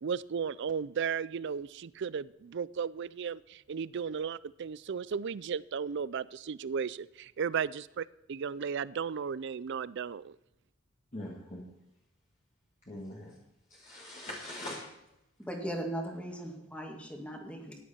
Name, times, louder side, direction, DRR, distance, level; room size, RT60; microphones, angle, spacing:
voice 1, 0.0-8.0 8.3-10.4, right 6 dB, 60° right, 19 dB, 0.4 m, -35 dB
voice 2, 11.1-11.6 12.9-13.3 13.7-14.9, left 1 dB, 35° left, -4 dB, 2.1 m, -42 dB
voice 3, 15.4-17.8, right 1 dB, 5° left, 2 dB, 2.0 m, -38 dB
14.5 x 10.0 x 4.4 m, 0.87 s
head